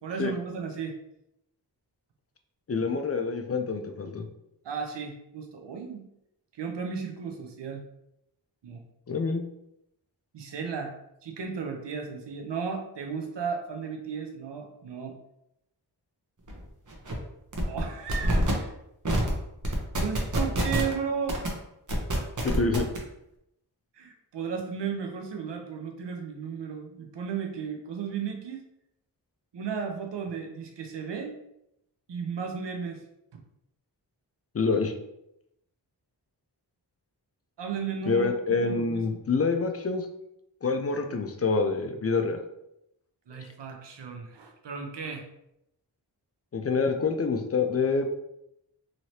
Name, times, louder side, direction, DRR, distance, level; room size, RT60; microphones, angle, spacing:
voice 1, 0.0-0.9 4.6-6.0 6.5-7.8 8.6-8.8 10.3-10.9 11.2-15.1 17.7-18.7 20.0-21.4 24.0-28.6 29.5-31.4 32.1-33.0 37.6-39.0 43.3-45.3, right 6 dB, 85° right, 4 dB, 0.6 m, -34 dB
voice 2, 2.7-4.3 9.1-9.4 22.4-22.9 34.5-34.9 38.1-40.1 40.6-42.4 43.4-43.5 46.5-48.1, left 4 dB, 35° left, 5 dB, 0.4 m, -26 dB
sound 1, 16.5-16.6 16.9-17.1 17.5-17.8 18.1-18.5 19.0-19.3 19.6-20.9 21.3-21.5 21.9-23.0, right 1 dB, 45° right, 0.9 m, -26 dB
3.0 x 2.8 x 2.8 m, 0.81 s
cardioid pair, 50°, 41 cm